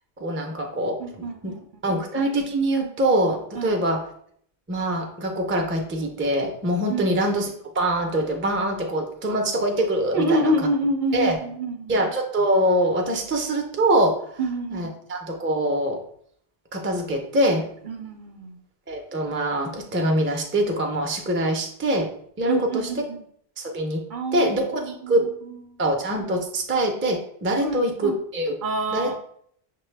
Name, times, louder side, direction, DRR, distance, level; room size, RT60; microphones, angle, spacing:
voice 1, 0.2-1.5 1.8-4.0 4.7-10.5 11.1-11.4 11.9-14.4 14.7-16.0 16.7-17.6 18.9-22.1 22.4-22.9 23.6-24.0 24.3-25.3 25.8-28.6 28.9-29.1, right 1 dB, 20° right, 2 dB, 0.4 m, -24 dB
voice 2, 1.0-1.6 1.9-2.0 3.5-3.7 6.9-7.0 10.1-12.0 14.4-15.0 17.5-18.6 22.5-23.2 24.1-24.5 24.8-25.8 27.6-28.2 28.6-29.2, right 1 dB, 60° right, 3 dB, 0.6 m, -27 dB
6.3 x 2.2 x 3.2 m, 0.65 s
omnidirectional pair, 1.0 m